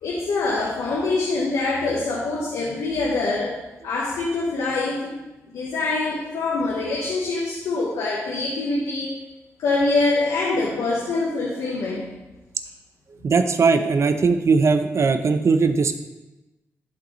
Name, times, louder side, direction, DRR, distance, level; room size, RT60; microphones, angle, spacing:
voice 1, 0.0-5.1 5.5-9.2 9.6-12.2, left 3 dB, 90° left, -4 dB, 1.0 m, -24 dB
voice 2, 13.2-16.0, right 4 dB, 50° right, 8 dB, 0.7 m, -19 dB
11.0 x 3.9 x 3.1 m, 1.1 s
cardioid pair, 55°, 6 cm